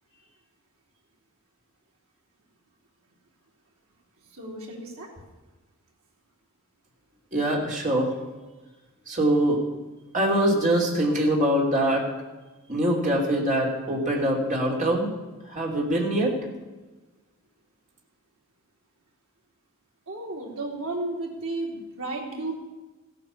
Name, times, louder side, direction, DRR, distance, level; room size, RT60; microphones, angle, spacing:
voice 1, 4.4-5.1 20.1-22.5, right 2 dB, 75° right, -1 dB, 3.6 m, -33 dB
voice 2, 7.3-8.1 9.1-9.6 10.1-12.0 12.7-15.1 15.5-16.3, right 1 dB, 35° right, -1 dB, 3.0 m, -23 dB
15.0 x 9.2 x 7.0 m, 1.2 s
head